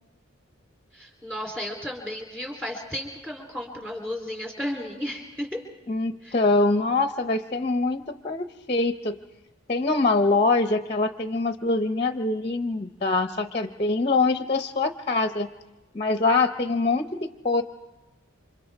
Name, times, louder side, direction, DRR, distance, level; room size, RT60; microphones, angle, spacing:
voice 1, 0.9-5.6 6.2-6.3, left 1 dB, 10° right, 0 dB, 3.3 m, -33 dB
voice 2, 5.9-9.2 9.7-15.5 15.9-17.6, left 3 dB, 30° left, 8 dB, 0.7 m, -24 dB
29.0 x 25.5 x 3.5 m, 1.1 s
head